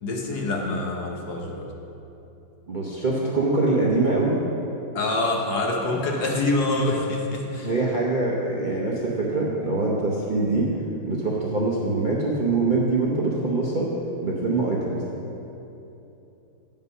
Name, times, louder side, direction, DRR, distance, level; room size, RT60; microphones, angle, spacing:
voice 1, 0.0-1.7 4.9-7.7, left 2 dB, 65° left, 0 dB, 1.5 m, -25 dB
voice 2, 2.7-4.4 7.6-10.7 11.0-13.9 14.2-15.0, right 3 dB, 45° right, -5 dB, 0.6 m, -24 dB
9.3 x 5.4 x 5.5 m, 2.9 s
omnidirectional pair, 1.9 m